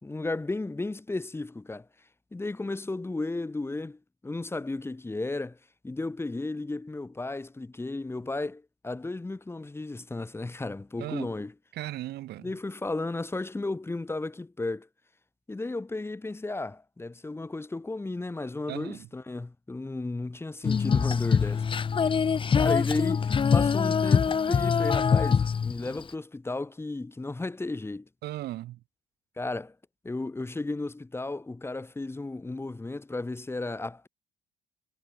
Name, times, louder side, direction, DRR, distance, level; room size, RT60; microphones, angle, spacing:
voice 1, 0.0-1.9 2.3-5.6 5.8-11.5 12.4-14.9 15.5-21.6 22.5-28.1 29.4-29.7 30.0-34.1, left 2 dB, 15° left, 4.2 m, -34 dB
voice 2, 11.0-11.3 11.7-12.5 18.7-19.1 28.2-28.8, right 15 dB, 75° right, 3.3 m, -37 dB
Female singing, 20.6-26.1, left 6 dB, 30° left, 1.2 m, -24 dB
cardioid pair, 110°, 17 cm